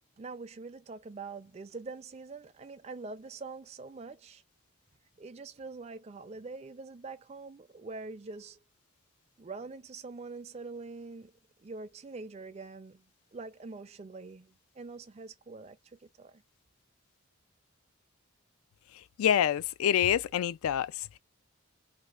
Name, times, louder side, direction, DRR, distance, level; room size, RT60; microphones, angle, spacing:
voice 1, 0.2-4.4 5.2-8.6 9.4-11.3 11.6-13.0 13.3-16.4, right 3 dB, 30° right, 0.4 m, -44 dB
voice 2, 19.2-21.2, left 9 dB, 80° left, 0.3 m, -27 dB
4.2 x 2.4 x 2.3 m
head